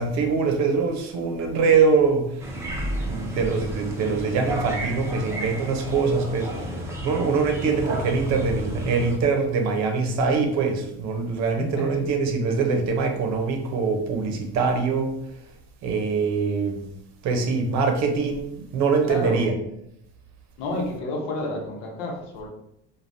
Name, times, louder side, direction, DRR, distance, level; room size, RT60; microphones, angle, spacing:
voice 1, 0.0-2.3 3.0-6.5 7.0-15.1 15.8-16.8 17.2-19.5, right 4 dB, 60° right, 4 dB, 0.7 m, -23 dB
sound 1, 2.4-9.2, right 1 dB, 10° right, 0.5 m, -32 dB
voice 2, 11.6-12.0 19.1-19.5 20.6-22.5, left 1 dB, 90° left, 0 dB, 0.8 m, -30 dB
3.3 x 2.3 x 2.6 m, 0.79 s
supercardioid pair, 110°, 31 cm